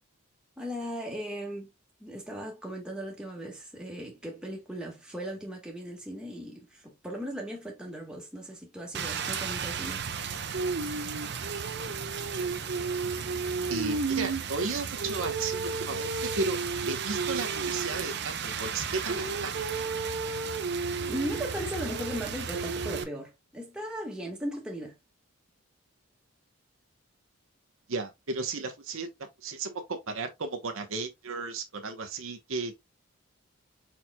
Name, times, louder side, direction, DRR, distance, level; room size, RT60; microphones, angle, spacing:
voice 1, 0.6-1.7 2.0-10.0 21.0-25.0, equal, 5° right, 1.5 m, -37 dB
Rain, 8.9-23.0, right 5 dB, 50° right, 0.6 m, -32 dB
voice 2, 13.7-16.6 16.9-19.5 27.9-29.1 29.4-32.8, right 3 dB, 70° right, 0.9 m, -34 dB
4.9 x 4.5 x 2.2 m
head